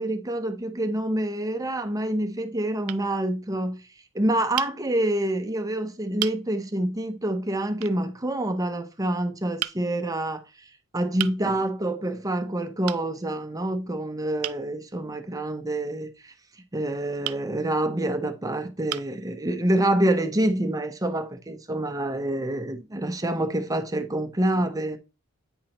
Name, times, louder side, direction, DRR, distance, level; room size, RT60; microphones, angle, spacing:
voice 1, 0.0-3.8 4.1-10.4 10.9-16.3 16.7-25.0, right 1 dB, 15° right, 0.7 m, -27 dB
sound 1, 1.1-1.7 2.4-2.6 2.9-3.1 4.6-4.8 5.6-5.7 6.2-6.4 7.8-8.0 9.6-9.8 11.2-11.4 12.9-13.1 14.4-14.6 17.2-17.4 18.3-18.4 18.9-19.2, right 15 dB, 85° right, 0.4 m, -33 dB
8.8 x 5.5 x 3.0 m
head